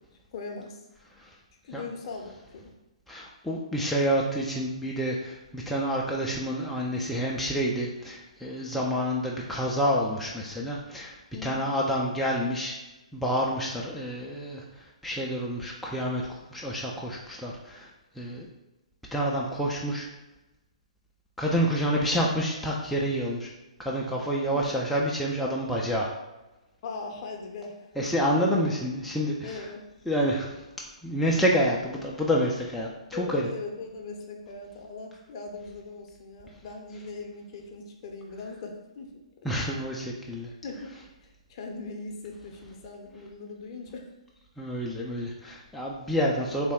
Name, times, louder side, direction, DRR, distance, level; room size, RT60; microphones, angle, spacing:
voice 1, 0.3-0.8 1.6-2.7 11.3-11.6 24.5-24.7 26.8-27.9 28.6-28.7 29.4-29.8 33.1-39.2 40.6-40.9 41.2-44.1, left 4 dB, 45° left, 2 dB, 0.6 m, -39 dB
voice 2, 3.1-12.7 13.1-17.9 18.2-18.5 19.1-20.1 21.4-23.5 23.8-26.1 28.0-29.6 30.1-30.5 31.0-33.5 39.4-40.5 44.6-46.7, equal, ahead, -4 dB, 0.3 m, -28 dB
3.1 x 2.1 x 3.5 m, 1.0 s
figure-of-eight pair, 130°, 4 cm